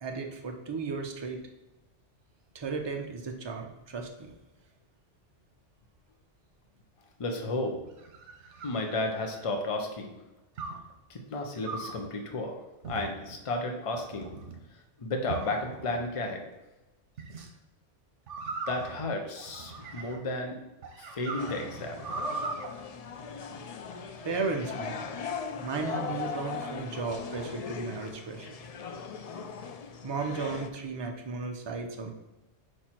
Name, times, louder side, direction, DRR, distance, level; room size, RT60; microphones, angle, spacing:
voice 1, 0.0-1.4 2.5-4.3 24.2-25.2 25.6-28.5 30.0-32.1, right 4 dB, 30° right, 3 dB, 0.5 m, -35 dB
voice 2, 7.2-7.8 8.6-10.1 11.1-14.3 15.0-16.4 18.7-20.6 21.0-22.0, left 2 dB, 35° left, 2 dB, 0.7 m, -33 dB
sound 1, 7.7-9.6 10.6-10.9 11.6-12.1 12.8-13.4 14.0-14.6 15.3-16.1 17.2-17.5 18.3-20.3 20.8-22.7, right 4 dB, 75° right, 1.2 m, -39 dB
sound 2, 21.4-30.7, left 6 dB, 75° left, 0.3 m, -39 dB
5.0 x 4.4 x 4.4 m, 1.0 s
omnidirectional pair, 1.2 m